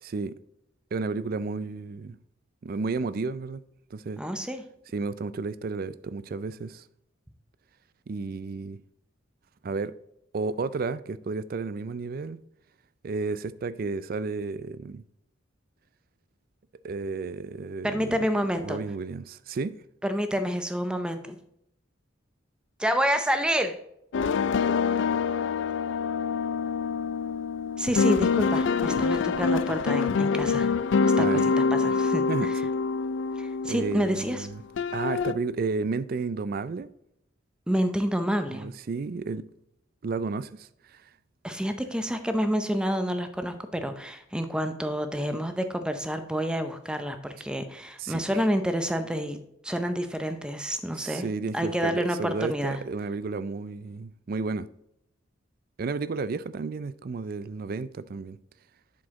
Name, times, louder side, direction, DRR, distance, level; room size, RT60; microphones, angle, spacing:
voice 1, 0.0-0.3 0.9-2.2 2.6-3.6 3.9-4.2 4.9-6.8 8.1-8.8 9.6-9.9 10.3-12.4 13.0-15.0 16.8-18.2 18.6-19.8 31.2-31.5 32.3-32.5 33.7-34.6 34.9-36.9 38.5-39.4 40.0-41.0 48.0-48.2 51.0-54.7 55.8-58.4, right 4 dB, 50° right, 0.4 m, -32 dB
voice 2, 4.2-4.6 17.8-18.8 20.0-21.4 22.8-23.8 27.8-30.7 31.2-31.3 31.6-32.6 33.4-34.5 37.7-38.7 41.4-49.4 49.6-51.3 51.5-52.8, equal, 5° right, 0.6 m, -28 dB
sound 1, 24.1-34.5 34.8-35.3, left 5 dB, 65° left, 0.4 m, -25 dB
7.5 x 6.2 x 3.6 m
head